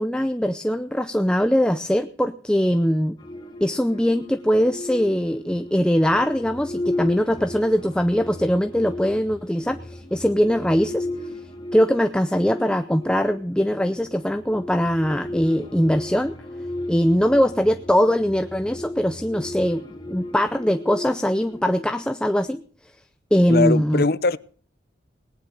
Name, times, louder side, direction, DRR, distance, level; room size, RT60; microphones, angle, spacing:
voice 1, 0.0-3.2 3.6-11.1 11.7-16.4 16.9-22.6 23.3-24.0, equal, 5° left, 0.6 m, -21 dB
sound 1, 3.2-22.1, left 2 dB, 25° left, 2.6 m, -35 dB
voice 2, 23.5-24.4, left 3 dB, 55° left, 0.8 m, -21 dB
19.0 x 10.5 x 6.5 m
head